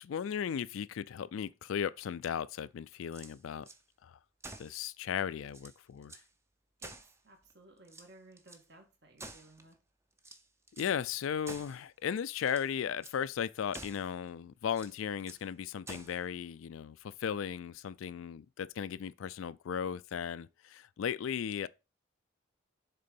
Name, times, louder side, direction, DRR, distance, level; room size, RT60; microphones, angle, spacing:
voice 1, 0.0-3.7 4.0-4.2 4.6-6.2 10.8-21.7, left 8 dB, 85° left, 0.4 m, -36 dB
sound 1, 3.0-3.8 4.4-4.8 5.2-5.3 5.5-6.3 6.8-7.5 7.8-8.6 9.2-9.8 10.2-11.0 11.5-11.8 12.3-12.7 13.0-13.2 13.7-14.1 14.7-15.5 15.9-16.2, right 2 dB, 15° right, 0.6 m, -50 dB
voice 2, 7.2-9.8, right 2 dB, 55° right, 1.8 m, -58 dB
6.7 x 3.8 x 5.2 m
head